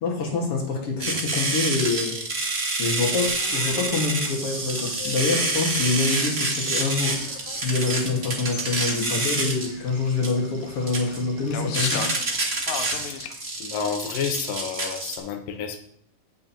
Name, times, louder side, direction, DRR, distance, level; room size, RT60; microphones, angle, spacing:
voice 1, 0.0-2.2 2.8-12.0, left 4 dB, 50° left, -1 dB, 2.3 m, -26 dB
sound 1, 1.0-15.2, right 2 dB, 80° right, 0.5 m, -27 dB
sound 2, 3.3-13.3, left 7 dB, 75° left, 2.0 m, -39 dB
voice 2, 13.6-15.8, left 6 dB, 90° left, 6 dB, 2.6 m, -30 dB
16.5 x 6.2 x 2.9 m, 0.65 s
omnidirectional pair, 3.9 m